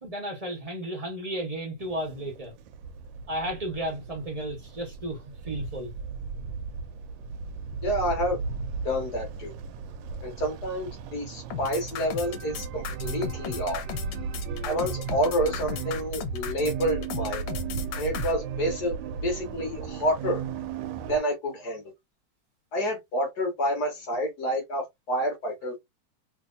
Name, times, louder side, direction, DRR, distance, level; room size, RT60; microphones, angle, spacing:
voice 1, 0.0-2.5 3.3-5.9, right 1 dB, 45° right, 0.5 m, -33 dB
sound 1, 1.8-21.2, right 5 dB, 75° right, 1.1 m, -36 dB
voice 2, 7.8-8.4 8.8-9.5 10.2-13.8 14.6-17.4 18.0-18.9 19.2-20.4 21.1-21.8 22.7-25.8, equal, 55° left, 1.5 m, -28 dB
sound 2, 11.5-18.3, left 7 dB, 80° left, 1.5 m, -36 dB
3.4 x 2.8 x 2.6 m
omnidirectional pair, 2.3 m